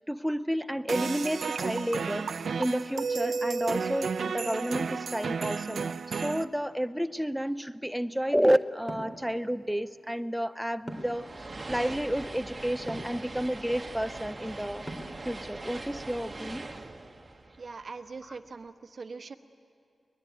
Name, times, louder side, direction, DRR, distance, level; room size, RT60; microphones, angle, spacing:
voice 1, 0.0-14.9 15.2-16.7 18.2-18.4, equal, 5° right, 11 dB, 0.5 m, -31 dB
sound 1, 0.9-6.4, right 5 dB, 80° right, 0.6 m, -32 dB
sound 2, 8.9-9.2 10.9-11.2 12.9-13.2 14.9-15.2, equal, 15° left, 3.5 m, -39 dB
sound 3, 10.9-18.3, right 2 dB, 35° right, 1.5 m, -42 dB
voice 2, 17.6-19.3, right 4 dB, 60° right, 8 dB, 1.1 m, -42 dB
23.0 x 20.5 x 9.3 m, 2.5 s
cardioid pair, 65°, 0 cm